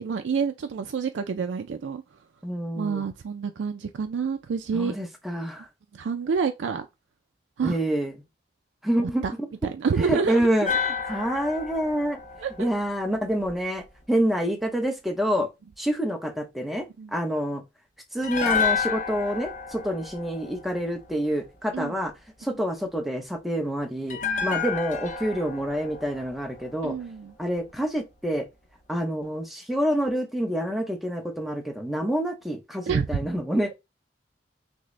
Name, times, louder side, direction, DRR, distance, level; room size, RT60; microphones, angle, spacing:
voice 1, 0.0-2.0 2.7-4.9 5.9-6.9 7.6-7.8 9.0-9.3 9.6-10.5 12.4-12.7 17.0-17.1 21.7-22.0 24.2-24.6 26.8-27.3 32.9-33.2, right 5 dB, 85° right, 0.4 m, -28 dB
voice 2, 2.4-3.0 4.7-5.7 7.6-8.2 8.8-9.5 10.0-12.2 12.6-15.5 15.8-16.9 17.1-17.6 18.1-22.1 22.4-27.0 27.4-28.5 28.9-33.7, equal, ahead, 0.7 m, -27 dB
sound 1, 10.6-13.8 18.2-21.4 24.1-27.3 27.6-27.7, left 6 dB, 45° left, 0.7 m, -31 dB
6.1 x 2.1 x 3.2 m
head